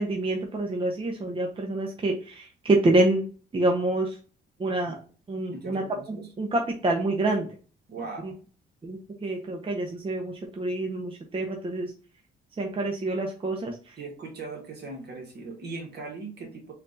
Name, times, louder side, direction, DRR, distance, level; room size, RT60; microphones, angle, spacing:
voice 1, 0.0-3.2 3.5-4.2 4.6-4.9 5.3-7.5 8.2-8.3 8.8-11.9 12.6-13.9, right 2 dB, 25° right, 1 dB, 0.8 m, -27 dB
voice 2, 5.4-6.3 7.9-8.3 14.0-16.7, right 3 dB, 55° right, 1 dB, 1.8 m, -39 dB
4.3 x 2.6 x 4.0 m, 0.39 s
cardioid pair, 90°, 20 cm